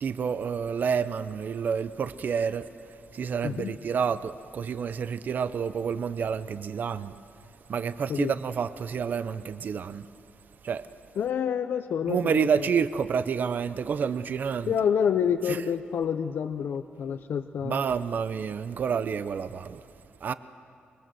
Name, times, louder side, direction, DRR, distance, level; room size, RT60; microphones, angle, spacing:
voice 1, 0.0-2.6 3.1-7.1 7.7-10.0 10.6-10.8 12.1-14.7 17.6-19.8 20.2-20.3, right 6 dB, 55° right, 0.6 m, -29 dB
voice 2, 3.4-3.8 8.1-8.3 11.2-12.7 14.7-17.8, left 7 dB, 75° left, 0.7 m, -28 dB
25.5 x 22.5 x 7.7 m
wide cardioid pair, 150°, 4 cm